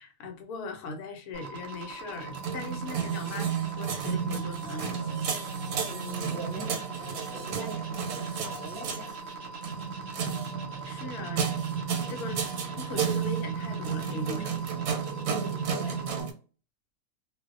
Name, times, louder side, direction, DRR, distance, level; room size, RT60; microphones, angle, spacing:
voice 1, 0.0-5.2 10.8-11.5 12.1-14.5, left 3 dB, 85° left, 5 dB, 1.1 m, -39 dB
sound 1, 1.3-16.2, right 3 dB, 60° right, 0.7 m, -42 dB
sound 2, 2.2-16.3, right 7 dB, 90° right, 1.1 m, -32 dB
voice 2, 5.8-9.1 15.2-16.0, right 2 dB, 20° right, -5 dB, 0.7 m, -42 dB
2.6 x 2.0 x 2.4 m, 0.38 s
omnidirectional pair, 1.5 m